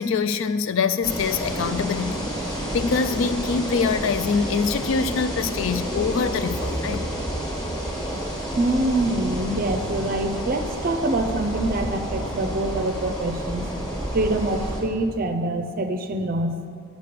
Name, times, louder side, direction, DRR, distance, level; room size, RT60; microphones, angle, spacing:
voice 1, 0.0-7.1, left 5 dB, 60° left, 0.3 m, -24 dB
sound 1, 1.0-14.8, equal, 15° left, 1.3 m, -30 dB
voice 2, 8.6-13.7 14.1-16.6, right 2 dB, 40° right, 0.5 m, -25 dB
6.7 x 6.3 x 6.8 m
head